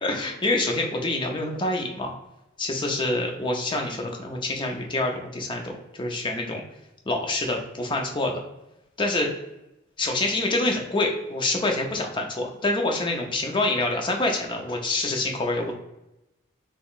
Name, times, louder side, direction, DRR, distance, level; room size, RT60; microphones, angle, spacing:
voice 1, 0.0-2.1 2.6-6.6 7.1-8.4 9.0-9.3 10.0-15.7, left 2 dB, 25° left, 1 dB, 0.5 m, -26 dB
3.7 x 3.0 x 2.3 m, 0.92 s
head